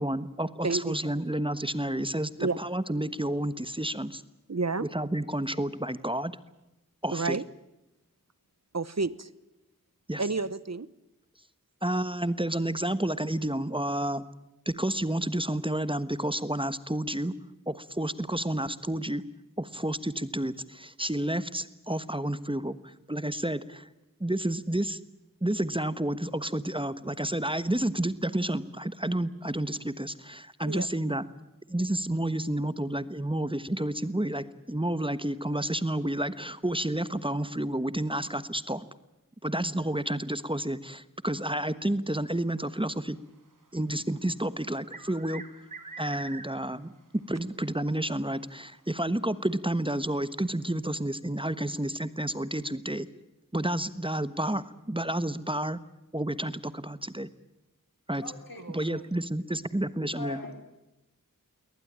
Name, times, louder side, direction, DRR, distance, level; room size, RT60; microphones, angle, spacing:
voice 1, 0.0-4.2 4.8-6.3 7.0-7.4 10.1-10.2 11.8-14.2 14.6-17.3 17.7-19.2 19.6-23.9 24.2-25.0 25.4-31.2 31.7-38.8 39.4-43.2 43.7-45.6 46.0-53.1 53.5-55.8 56.1-57.3 58.1-58.2 58.7-60.4, right 1 dB, 15° right, 14 dB, 1.3 m, -30 dB
voice 2, 0.6-1.0 2.4-2.6 4.5-4.9 7.1-7.4 8.7-9.3 10.2-10.9 30.6-30.9 58.6-59.0, right 3 dB, 50° right, 18 dB, 1.1 m, -30 dB
sound 1, 44.6-46.8 47.2-47.3 48.2-48.3 49.5-49.6, right 3 dB, 65° right, 2.6 m, -44 dB
voice 3, 58.2-58.6 60.2-60.6, left 3 dB, 80° left, 5 dB, 4.5 m, -40 dB
22.5 x 19.0 x 8.8 m, 0.93 s
wide cardioid pair, 45°, 34 cm